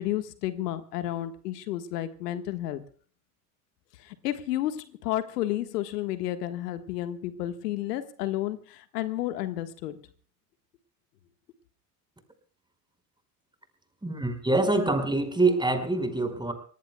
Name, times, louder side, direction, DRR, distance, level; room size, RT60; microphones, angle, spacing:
voice 1, 0.0-2.8 4.0-10.0, left 13 dB, 75° left, 10 dB, 1.6 m, -31 dB
voice 2, 14.0-16.5, right 2 dB, 10° right, 8 dB, 4.9 m, -25 dB
25.5 x 19.5 x 2.3 m, 0.43 s
hypercardioid pair, 70°, 48 cm